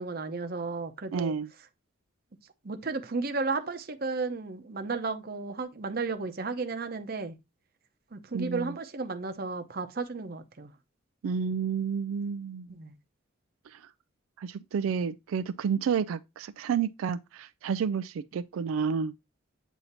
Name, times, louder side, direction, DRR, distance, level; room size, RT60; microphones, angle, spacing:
voice 1, 0.0-1.3 2.6-7.4 8.1-10.7 12.7-13.0, right 4 dB, 50° right, 0.8 m, -33 dB
voice 2, 1.1-1.5 8.3-8.7 11.2-12.8 13.7-13.8 14.4-19.1, right 6 dB, 90° right, 0.3 m, -30 dB
8.1 x 2.7 x 4.2 m
head